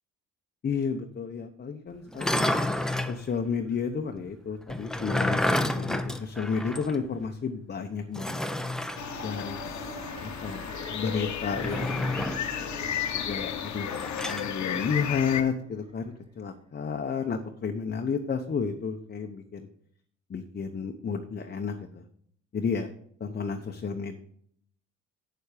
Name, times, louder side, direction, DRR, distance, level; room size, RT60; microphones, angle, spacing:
voice 1, 0.6-2.6 3.1-8.4 9.2-12.1 13.1-13.9 14.2-19.7 20.3-22.0 22.5-22.9 23.2-24.2, left 5 dB, 35° left, 5 dB, 0.9 m, -32 dB
sound 1, 2.1-3.2 4.7-7.0 7.3-7.4 8.1-9.0 11.5-12.5 13.9-14.5, left 1 dB, ahead, 0.7 m, -29 dB
sound 2, 8.7-15.8, right 1 dB, 20° right, 3.9 m, -44 dB
sound 3, 9.0-15.4, left 9 dB, 70° left, 1.0 m, -34 dB
8.0 x 7.1 x 5.0 m, 0.65 s
cardioid pair, 90°, 30 cm